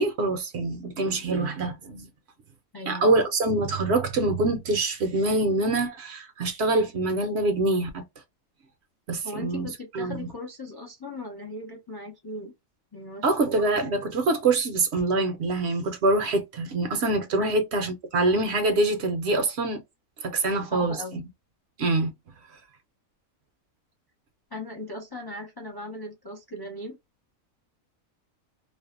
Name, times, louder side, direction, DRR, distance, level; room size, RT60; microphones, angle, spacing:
voice 1, 0.0-2.1 2.9-8.0 9.1-10.3 13.2-19.8 20.2-21.2 21.8-22.1, right 2 dB, 65° right, 0.8 m, -25 dB
voice 2, 2.7-3.1 9.2-12.5 12.9-13.6 17.4-17.6 20.7-21.2 24.5-27.0, left 1 dB, 40° left, 0.3 m, -38 dB
2.6 x 2.1 x 2.4 m
omnidirectional pair, 1.4 m